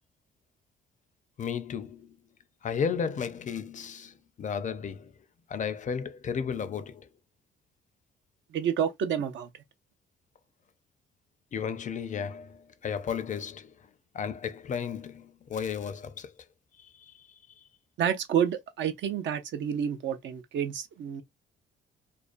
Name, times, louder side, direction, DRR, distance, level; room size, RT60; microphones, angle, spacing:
voice 1, 1.4-2.2 2.6-5.1 5.5-7.1 11.5-13.7 14.1-16.5 16.8-17.6, left 7 dB, 40° left, 0.4 m, -34 dB
voice 2, 8.5-9.5 18.0-21.2, right 8 dB, 70° right, 0.5 m, -29 dB
2.4 x 2.2 x 2.4 m
cardioid pair, 90°, 20 cm